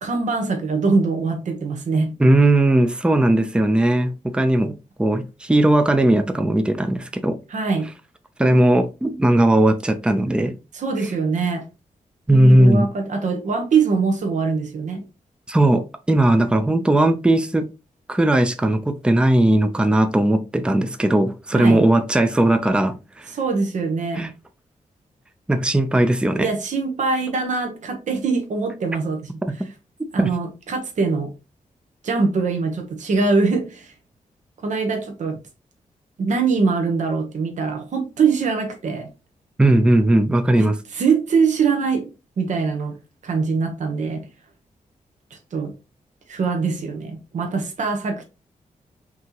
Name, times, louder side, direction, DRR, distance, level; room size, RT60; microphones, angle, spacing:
voice 1, 0.0-2.2 7.5-7.9 10.7-11.7 12.3-15.0 21.5-21.9 23.3-24.3 26.4-29.3 30.1-31.3 32.0-33.9 34.6-35.4 36.2-39.1 40.6-42.1 42.4-43.0 43.2-44.3 45.3-45.7 46.3-48.2, right 4 dB, 60° right, 0.9 m, -23 dB
voice 2, 2.2-4.7 5.0-7.4 8.4-10.5 12.3-12.9 15.5-17.7 18.1-23.3 24.2-24.3 25.5-26.5 30.2-30.3 39.6-40.8, right 1 dB, 5° right, 0.5 m, -18 dB
5.8 x 2.9 x 2.9 m
wide cardioid pair, 160°, 14 cm